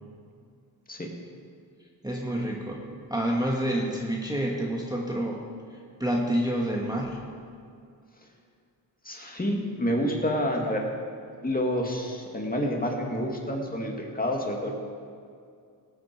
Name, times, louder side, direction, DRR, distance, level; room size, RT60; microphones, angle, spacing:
voice 1, 2.0-5.4 5.7-7.2, right 1 dB, 10° right, -2 dB, 1.5 m, -28 dB
voice 2, 9.0-10.8 11.4-14.7, equal, 20° left, 0 dB, 2.2 m, -28 dB
17.5 x 9.2 x 4.6 m, 2.3 s
cardioid pair, 70°, 41 cm